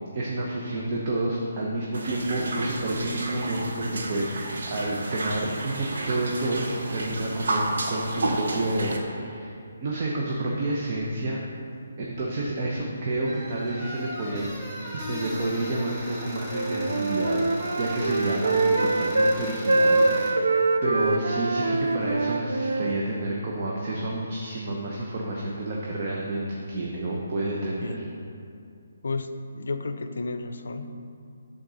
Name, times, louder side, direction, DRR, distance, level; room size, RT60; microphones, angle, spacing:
voice 1, 0.1-9.5 9.8-11.4 12.0-14.5 14.9-20.5 20.8-28.0, right 1 dB, 35° right, -3 dB, 0.8 m, -29 dB
sound 1, 1.9-9.0, right 2 dB, 65° right, 0.9 m, -31 dB
sound 2, 13.2-20.3, equal, 10° right, 1.0 m, -38 dB
Wind instrument woodwind instrument, 16.5-19.4 19.7-23.0, right 3 dB, 85° right, 0.5 m, -24 dB
voice 2, 29.0-30.9, left 3 dB, 75° left, 9 dB, 0.5 m, -32 dB
6.5 x 3.9 x 6.2 m, 2.5 s
hypercardioid pair, 165°, 0 cm